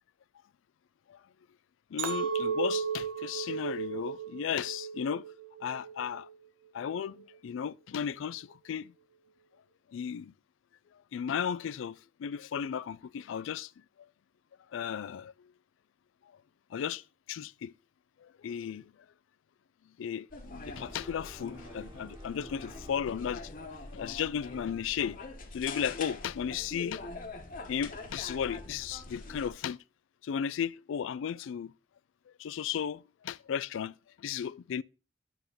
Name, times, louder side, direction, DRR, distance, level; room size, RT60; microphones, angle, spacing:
voice 1, 1.9-5.3 5.6-6.3 6.7-8.9 9.9-10.3 11.1-13.7 14.7-15.3 16.7-17.7 18.2-18.9 20.0-23.5 23.9-25.2 25.5-27.0 27.7-29.8 30.2-31.7 32.4-34.8, left 8 dB, 70° left, 0.3 m, -35 dB
Chink clink, 2.0-6.3 6.8-7.2, right 6 dB, 70° right, 1.1 m, -35 dB
sound 1, 20.3-29.5, left 3 dB, 45° left, 1.1 m, -44 dB
sound 2, 20.6-24.1, right 1 dB, 25° right, 1.3 m, -53 dB
9.0 x 3.6 x 5.4 m
head